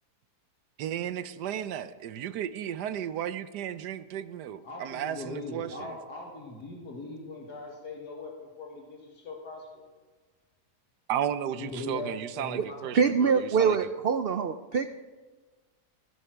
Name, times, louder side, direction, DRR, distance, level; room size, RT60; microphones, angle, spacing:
voice 1, 0.8-6.0 11.1-13.8, right 10 dB, 90° right, 13 dB, 1.3 m, -34 dB
voice 2, 4.6-9.8 11.6-13.0, left 2 dB, 85° left, 0 dB, 2.4 m, -40 dB
voice 3, 12.9-14.9, right 6 dB, 75° right, 9 dB, 0.5 m, -24 dB
15.5 x 15.5 x 4.6 m, 1.4 s
omnidirectional pair, 1.7 m